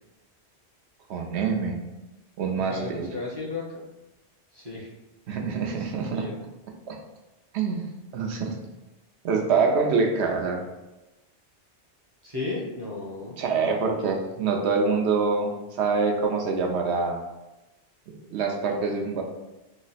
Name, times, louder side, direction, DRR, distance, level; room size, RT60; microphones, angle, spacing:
voice 1, 1.1-1.8 2.4-3.1 5.3-6.3 6.9-7.0 7.5-7.8 8.1-8.6 9.2-10.6 13.4-15.5 15.8-17.2 18.3-19.2, right 4 dB, 75° right, 1 dB, 0.8 m, -25 dB
voice 2, 2.6-3.8 4.5-4.9 5.6-6.3 12.2-13.4, left 3 dB, 30° right, -5 dB, 0.5 m, -34 dB
3.0 x 2.0 x 4.0 m, 1.0 s
omnidirectional pair, 1.1 m